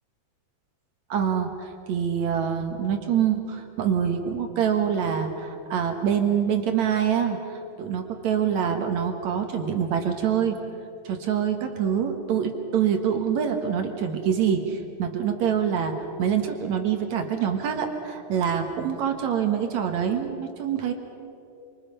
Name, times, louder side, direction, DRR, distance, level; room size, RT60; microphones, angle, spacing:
voice 1, 1.1-10.6 11.0-20.9, right 8 dB, 70° right, 4 dB, 2.8 m, -25 dB
27.0 x 25.5 x 5.6 m, 2.7 s
omnidirectional pair, 3.3 m